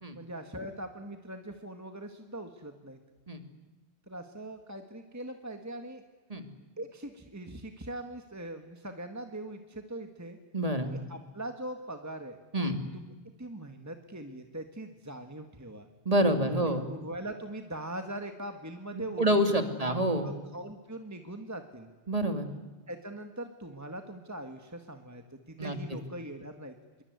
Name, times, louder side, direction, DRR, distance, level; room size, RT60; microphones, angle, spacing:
voice 1, 0.1-3.0 4.1-6.0 6.8-10.4 10.9-12.4 12.9-15.9 16.5-19.4 19.8-20.0 20.2-21.9 22.9-25.2 25.5-26.7, right 1 dB, 15° right, 6 dB, 1.7 m, -41 dB
voice 2, 10.5-10.9 12.5-12.8 16.0-16.9 18.9-20.3 22.1-22.5 25.6-26.0, right 1 dB, 35° right, 7 dB, 2.6 m, -27 dB
25.5 x 23.5 x 9.6 m, 1.2 s
omnidirectional pair, 1.1 m